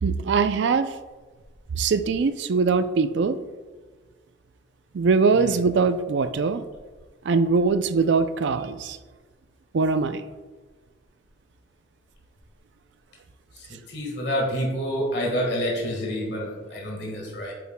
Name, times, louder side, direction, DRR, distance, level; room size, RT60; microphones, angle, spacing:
voice 1, 0.0-0.9 1.7-3.4 4.9-6.6 7.2-9.0 9.7-10.2, right 4 dB, 65° right, 11 dB, 0.4 m, -22 dB
voice 2, 13.9-17.5, equal, 60° left, -1 dB, 1.6 m, -28 dB
8.6 x 6.9 x 2.2 m, 1.3 s
head